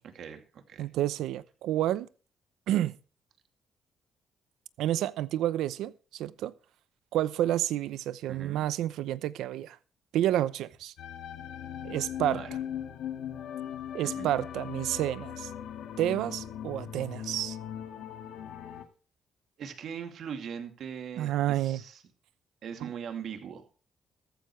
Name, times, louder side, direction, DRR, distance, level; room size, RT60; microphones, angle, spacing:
voice 1, 0.0-0.9 8.3-8.7 12.3-12.5 14.0-14.3 19.6-22.0 22.6-23.6, right 7 dB, 65° right, 2.5 m, -40 dB
voice 2, 0.8-2.1 2.7-2.9 4.8-6.5 7.1-9.8 10.1-10.9 11.8-12.4 13.9-15.5 16.0-17.6 21.2-21.8 22.8-22.9, right 13 dB, 85° right, 0.7 m, -29 dB
sound 1, 11.0-18.8, left 9 dB, 80° left, 2.2 m, -39 dB
14.5 x 14.5 x 3.3 m
cardioid pair, 90°, 0 cm